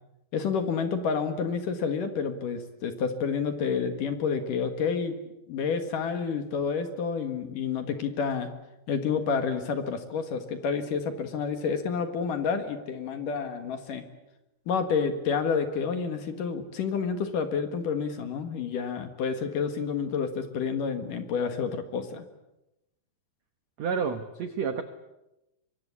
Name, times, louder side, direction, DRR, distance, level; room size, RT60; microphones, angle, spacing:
voice 1, 0.3-5.2 5.5-8.5 8.9-14.0 14.7-22.2, left 6 dB, 60° left, 8 dB, 2.9 m, -29 dB
voice 2, 23.8-24.8, right 6 dB, 70° right, 9 dB, 1.6 m, -29 dB
24.5 x 24.0 x 8.5 m, 0.91 s
omnidirectional pair, 5.0 m